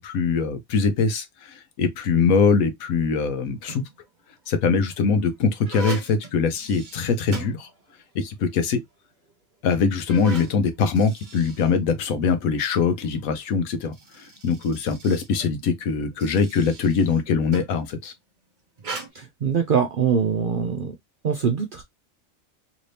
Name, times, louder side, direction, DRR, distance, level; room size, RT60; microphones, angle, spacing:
voice 1, 0.0-3.8 4.5-7.7 8.1-8.8 9.6-18.1, left 5 dB, 80° left, 1.2 m, -22 dB
sound 1, 3.4-4.1 4.8-8.2 8.5-8.6 9.3-9.4 9.9-12.4 13.6-17.9 18.8-19.1, right 3 dB, 40° right, 0.9 m, -40 dB
voice 2, 19.1-20.9 21.2-21.8, right 6 dB, 60° right, 0.5 m, -23 dB
3.2 x 2.7 x 3.2 m
omnidirectional pair, 1.5 m